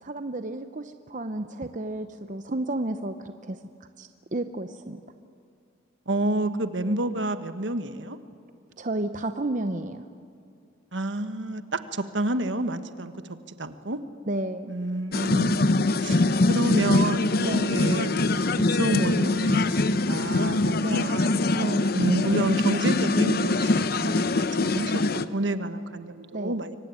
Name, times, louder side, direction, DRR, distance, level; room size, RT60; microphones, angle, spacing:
voice 1, 0.0-3.6 4.0-5.0 8.8-10.0 14.3-14.7 17.4-17.8 20.8-21.2 21.6-22.0 26.3-26.6, right 2 dB, 40° right, 9 dB, 0.8 m, -32 dB
voice 2, 6.1-8.2 10.9-13.1 13.5-14.0 14.7-18.2 18.7-21.3 21.9-26.8, right 2 dB, 70° right, 10 dB, 1.3 m, -29 dB
sound 1, 15.1-25.2, left 2 dB, 50° left, 0.8 m, -23 dB
25.0 x 24.5 x 9.7 m, 2.3 s
head